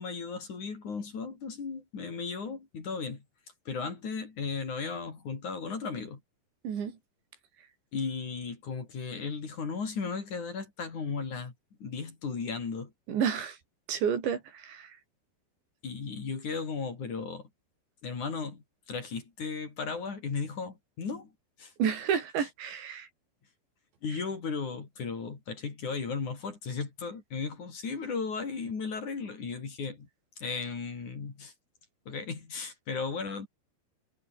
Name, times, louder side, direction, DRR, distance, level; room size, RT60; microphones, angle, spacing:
voice 1, 0.0-3.2 3.7-6.2 7.9-11.5 11.8-12.9 15.8-17.4 18.0-21.3 21.6-21.7 24.0-30.1 30.4-31.5 32.1-33.5, left 5 dB, 45° left, 5.3 m, -35 dB
voice 2, 6.6-7.0 13.1-13.6 13.9-14.9 21.8-23.1, right 7 dB, 75° right, 6.0 m, -30 dB
omnidirectional pair, 5.2 m